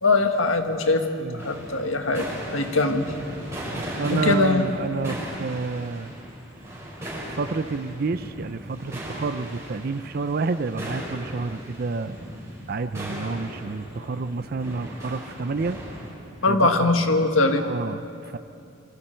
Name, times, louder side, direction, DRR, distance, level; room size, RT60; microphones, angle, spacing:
voice 1, 0.0-1.0 1.3-2.3 2.5-3.1 4.1-4.6 16.4-17.7, left 3 dB, 85° left, 5 dB, 1.5 m, -21 dB
sound 1, 1.4-16.1, equal, 15° right, 5.6 m, -37 dB
voice 2, 3.7-6.1 7.3-12.1 12.7-15.8 16.5-16.9 17.4-18.4, right 4 dB, 50° right, 11 dB, 0.5 m, -29 dB
27.5 x 23.0 x 4.5 m, 2.5 s
head